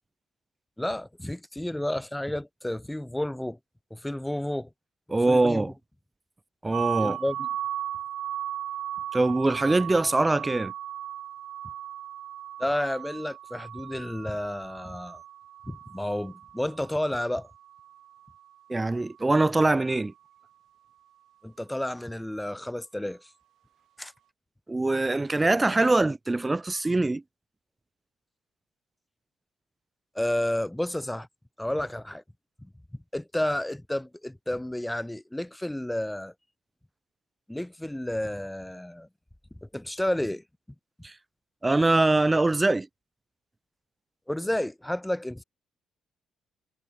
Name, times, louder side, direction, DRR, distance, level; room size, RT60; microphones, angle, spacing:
voice 1, 0.8-3.6 3.9-4.7 5.3-5.7 7.0-7.5 12.6-15.2 15.7-17.5 21.4-23.3 24.0-24.1 30.2-31.3 31.6-32.2 33.1-36.3 37.5-39.1 39.6-40.4 44.3-45.4, left 1 dB, 5° left, 1.9 m, -31 dB
voice 2, 5.1-5.7 6.6-7.2 9.1-10.7 18.7-20.1 24.7-27.2 41.0-41.1 41.6-42.9, right 2 dB, 15° right, 1.2 m, -23 dB
sound 1, 6.7-18.5, right 11 dB, 75° right, 4.7 m, -37 dB
cardioid pair, 90°, 0 cm